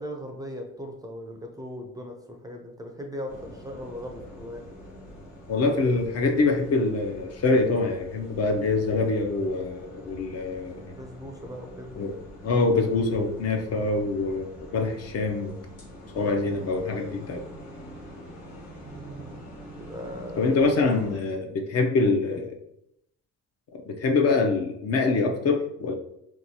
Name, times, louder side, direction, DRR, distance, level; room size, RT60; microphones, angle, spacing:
voice 1, 0.0-4.6 10.9-12.0 18.7-20.5, equal, 15° right, 2 dB, 0.4 m, -39 dB
sound 1, 3.3-21.2, equal, 75° left, 1.1 m, -45 dB
voice 2, 5.5-10.9 12.0-12.2 12.4-15.6 16.1-17.4 20.4-22.6 23.9-26.0, left 3 dB, 55° left, 4 dB, 0.5 m, -25 dB
2.8 x 2.2 x 2.7 m, 0.77 s
cardioid pair, 90°, 30 cm